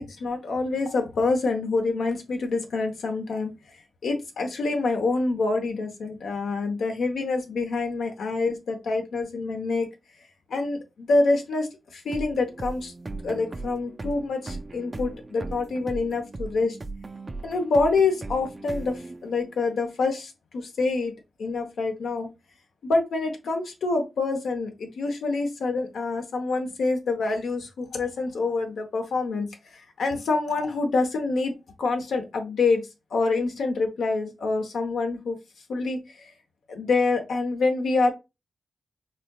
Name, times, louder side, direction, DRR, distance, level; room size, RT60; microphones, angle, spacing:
voice 1, 0.0-3.5 4.0-9.9 10.5-12.9 13.2-16.8 17.4-21.1 21.4-22.3 22.8-31.5 31.8-32.8 33.1-35.4 35.7-36.3 36.7-38.1, left 3 dB, 80° left, 4 dB, 0.9 m, -26 dB
sound 1, 12.1-19.7, right 3 dB, 35° right, 0.5 m, -38 dB
4.2 x 2.7 x 2.3 m, 0.24 s
cardioid pair, 55°, 0 cm